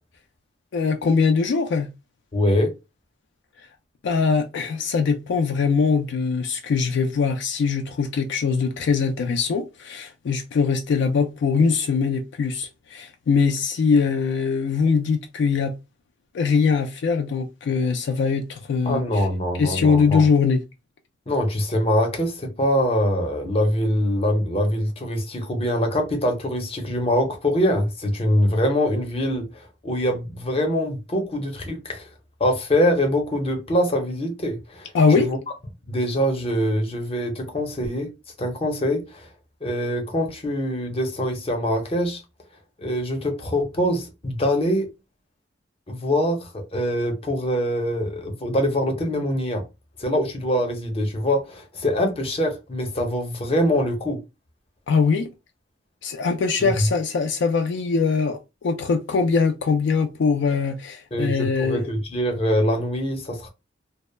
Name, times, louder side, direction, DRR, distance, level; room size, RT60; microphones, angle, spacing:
voice 1, 0.7-1.9 4.0-15.7 16.3-19.2 19.6-20.6 34.9-35.3 54.9-55.3 56.0-61.9, left 5 dB, 65° left, 0.3 m, -22 dB
voice 2, 2.3-2.7 18.9-20.2 21.3-32.1 32.4-35.4 35.9-38.1 38.4-39.3 39.6-42.2 42.8-44.9 45.9-49.6 50.0-54.2 56.6-56.9 61.1-63.5, equal, 30° left, 0.6 m, -24 dB
2.2 x 2.0 x 3.1 m
head